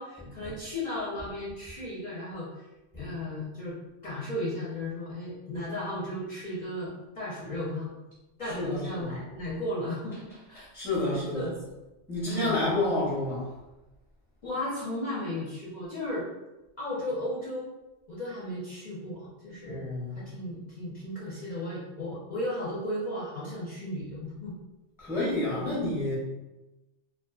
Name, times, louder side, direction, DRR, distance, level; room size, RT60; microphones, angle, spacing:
voice 1, 0.0-2.7 2.9-3.8 4.0-7.9 8.4-10.7 11.0-11.5 12.3-12.7 14.4-16.3 16.8-17.7 18.1-24.5, left 1 dB, 50° left, -7 dB, 0.6 m, -35 dB
voice 2, 8.5-9.2 10.6-11.5 12.1-13.5 19.6-20.3 25.0-26.2, left 2 dB, 5° right, -7 dB, 0.6 m, -29 dB
2.5 x 2.3 x 2.3 m, 1.0 s
omnidirectional pair, 1.2 m